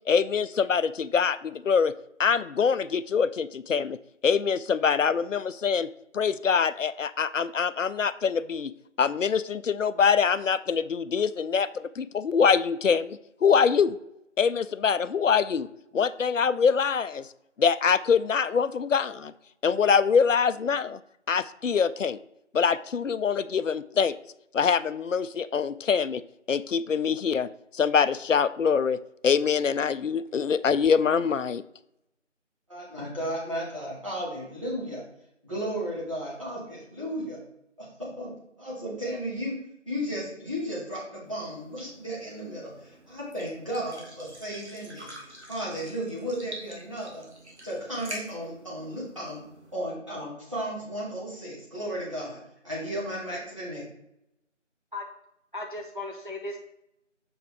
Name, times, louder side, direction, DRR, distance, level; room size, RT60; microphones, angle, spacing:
voice 1, 0.1-1.9 2.2-4.0 4.2-8.7 9.0-14.0 14.4-15.7 15.9-17.3 17.6-19.3 19.6-21.0 21.3-22.2 22.5-24.2 24.5-26.2 26.5-27.5 27.7-29.0 29.2-31.6, left 6 dB, 80° left, 0.5 m, -24 dB
voice 2, 32.7-35.1 35.4-37.4 37.8-39.6 39.9-45.1 45.5-47.3 47.6-49.4 49.7-52.4 52.6-53.8, equal, 25° right, 2.2 m, -34 dB
sound 1, 41.2-49.7, right 1 dB, 60° right, 2.1 m, -46 dB
voice 3, 55.5-56.6, left 2 dB, 45° right, 0.6 m, -36 dB
7.0 x 5.8 x 3.4 m
figure-of-eight pair, 175°, 37 cm